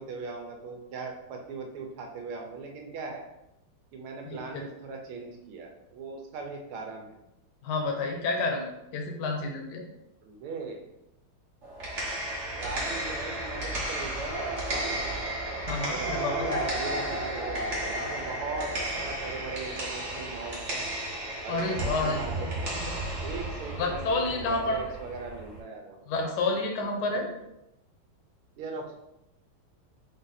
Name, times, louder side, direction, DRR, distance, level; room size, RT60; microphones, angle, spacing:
voice 1, 0.0-3.2 3.9-7.2 10.2-10.8 12.6-15.2 15.9-20.9 21.4-22.8 23.2-26.0 28.6-29.0, right 4 dB, 80° right, 2 dB, 1.6 m, -39 dB
voice 2, 4.2-4.6 7.6-9.8 15.6-16.6 21.5-22.5 23.8-24.8 26.1-27.3, left 3 dB, 60° left, 2 dB, 1.2 m, -30 dB
sound 1, 11.6-25.6, right 1 dB, 40° right, 1.3 m, -33 dB
4.4 x 2.6 x 4.0 m, 0.87 s
omnidirectional pair, 2.4 m